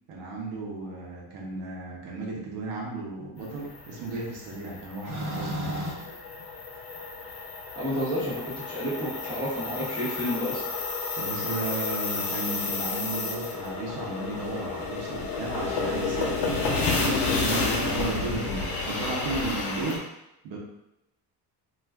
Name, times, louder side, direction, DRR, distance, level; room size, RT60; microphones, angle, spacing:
voice 1, 0.1-6.1 11.1-16.9 17.3-20.1 20.4-20.6, right 3 dB, 80° right, -3 dB, 0.9 m, -34 dB
sound 1, 3.5-20.0, left 3 dB, 85° left, 0.8 m, -31 dB
sound 2, 5.0-7.2 8.1-8.2 9.6-9.7 11.4-11.5, equal, 50° right, 1.2 m, -33 dB
voice 2, 7.8-10.6, equal, 10° right, -11 dB, 1.1 m, -30 dB
2.4 x 2.3 x 3.4 m, 0.87 s
cardioid pair, 175°, 41 cm